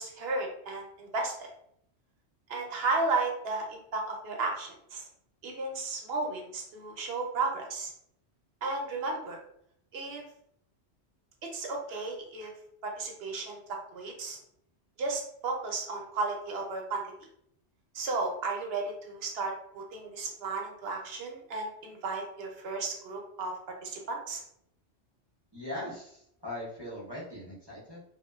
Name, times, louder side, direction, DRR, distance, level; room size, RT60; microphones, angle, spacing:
voice 1, 0.0-1.5 2.5-5.0 5.4-7.9 8.6-9.4 9.9-10.2 11.5-12.5 12.8-13.6 13.9-14.4 15.0-17.0 17.9-23.5 23.8-24.4, right 3 dB, 65° right, 1 dB, 0.8 m, -34 dB
voice 2, 25.5-28.0, left 1 dB, 30° right, -7 dB, 0.6 m, -40 dB
2.5 x 2.1 x 2.2 m, 0.72 s
omnidirectional pair, 1.2 m